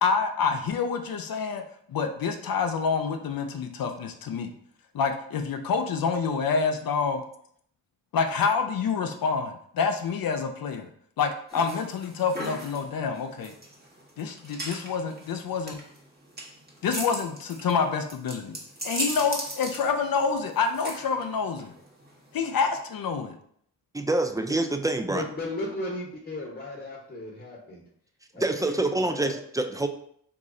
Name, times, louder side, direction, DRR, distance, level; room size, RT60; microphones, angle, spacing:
voice 1, 0.0-1.6 1.9-4.5 4.9-7.2 8.1-10.9 11.2-13.5 14.2-15.8 16.8-18.6 18.8-21.7 22.3-23.3, left 5 dB, 65° left, 6 dB, 0.5 m, -27 dB
sound 1, 11.5-22.8, right 1 dB, 25° right, 1.0 m, -38 dB
voice 2, 23.9-25.2 28.3-29.9, right 2 dB, 10° right, 6 dB, 0.3 m, -26 dB
voice 3, 25.0-27.8 28.3-29.4, left 2 dB, 25° left, -2 dB, 0.9 m, -36 dB
3.0 x 2.4 x 3.7 m, 0.66 s
cardioid pair, 50°, 38 cm